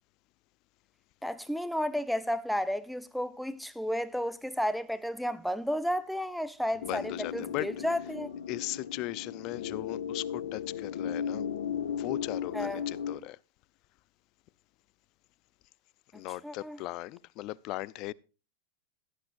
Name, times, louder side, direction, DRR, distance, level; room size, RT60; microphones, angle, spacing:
voice 1, 1.2-7.0 7.3-8.3 12.5-12.8 16.4-16.8, equal, ahead, 1.2 m, -32 dB
voice 2, 6.7-7.8 8.5-11.4 11.9-13.4 16.1-18.1, left 18 dB, 50° left, 0.7 m, -38 dB
sound 1, 6.8-13.2, left 8 dB, 80° left, 1.7 m, -36 dB
17.0 x 12.0 x 2.6 m
hypercardioid pair, 110°, 0 cm